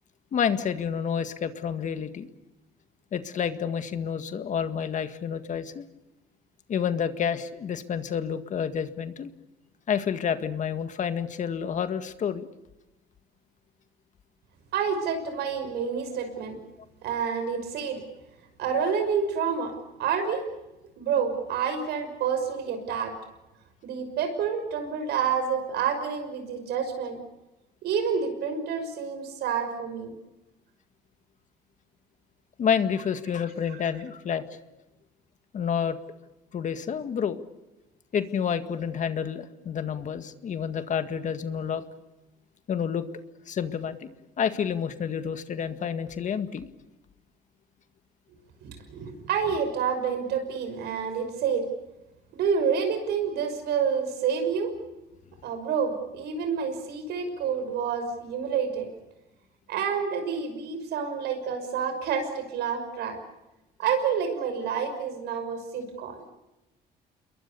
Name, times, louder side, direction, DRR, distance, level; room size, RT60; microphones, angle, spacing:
voice 1, 0.3-2.3 3.1-5.8 6.7-9.3 9.9-12.5 32.6-34.6 35.5-36.0 36.5-37.4 38.1-41.8 42.7-43.1 43.5-44.1 44.4-46.7, left 7 dB, 45° left, 10 dB, 1.9 m, -29 dB
voice 2, 14.7-16.6 17.0-18.0 18.6-19.7 20.0-20.5 21.0-23.1 23.8-27.2 27.8-30.1 48.6-51.7 52.4-54.7 55.4-58.9 59.7-63.2 63.8-66.2, right 6 dB, 75° right, 7 dB, 6.1 m, -28 dB
28.5 x 22.5 x 6.9 m, 1.0 s
cardioid pair, 110°, 17 cm